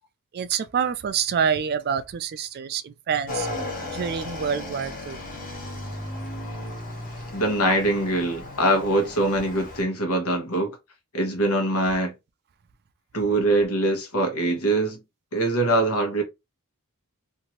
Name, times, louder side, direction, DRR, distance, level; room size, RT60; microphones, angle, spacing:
voice 1, 0.3-3.5 3.9-5.2, right 7 dB, 45° right, 0.3 m, -27 dB
Motorcycle / Engine, 3.3-9.8, left 1 dB, 40° left, 1.1 m, -35 dB
voice 2, 7.3-10.8 11.1-12.1 13.1-15.0 15.3-16.2, right 1 dB, 75° left, 1.2 m, -23 dB
2.8 x 2.5 x 2.9 m
head